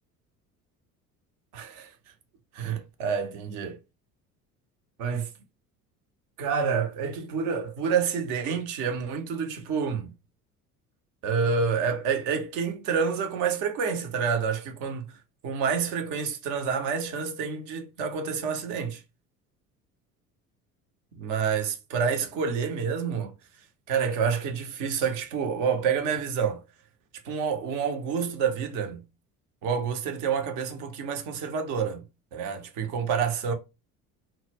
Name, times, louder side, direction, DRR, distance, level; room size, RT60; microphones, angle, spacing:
voice 1, 1.5-1.9 2.5-3.8 5.0-5.3 6.4-10.1 11.2-15.1 15.4-19.0 21.1-23.3 23.9-26.6 27.2-29.0 29.6-33.5, right 6 dB, 45° right, 0.6 m, -28 dB
2.1 x 2.0 x 3.3 m
figure-of-eight pair, 65°, 45 cm